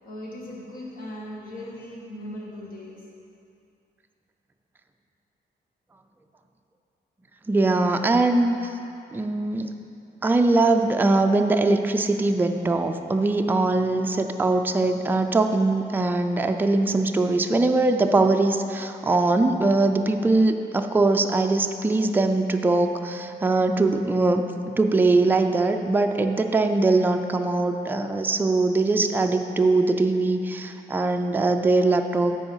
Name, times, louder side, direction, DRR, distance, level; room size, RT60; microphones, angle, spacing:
voice 1, 0.0-3.0, left 1 dB, 60° left, -4 dB, 1.8 m, -38 dB
voice 2, 7.5-8.6 9.1-9.7 10.2-24.4 24.8-32.3, right 2 dB, 10° right, 5 dB, 0.4 m, -21 dB
8.8 x 4.8 x 6.2 m, 2.5 s
wide cardioid pair, 150°, 17 cm